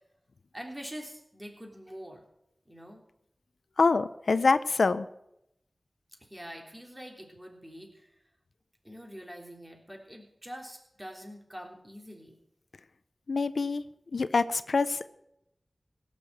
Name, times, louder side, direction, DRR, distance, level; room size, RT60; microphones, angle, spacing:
voice 1, 0.5-2.2 2.7-3.0 6.2-8.1 8.8-12.4, equal, 15° right, 1 dB, 3.3 m, -45 dB
voice 2, 3.8-5.1 13.3-13.8 14.1-15.1, left 4 dB, 90° left, 14 dB, 0.5 m, -25 dB
17.0 x 6.7 x 7.8 m, 0.81 s
wide cardioid pair, 55°, 0 cm